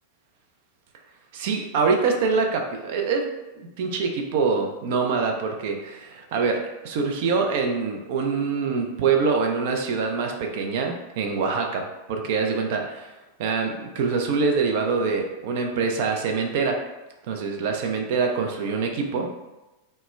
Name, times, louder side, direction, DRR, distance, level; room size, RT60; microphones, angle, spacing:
voice 1, 1.3-3.3 3.5-13.1 13.4-16.8 17.3-19.3, right 4 dB, 50° right, 3 dB, 0.3 m, -25 dB
2.1 x 2.1 x 3.1 m, 1.1 s
figure-of-eight pair, 90°, 0 cm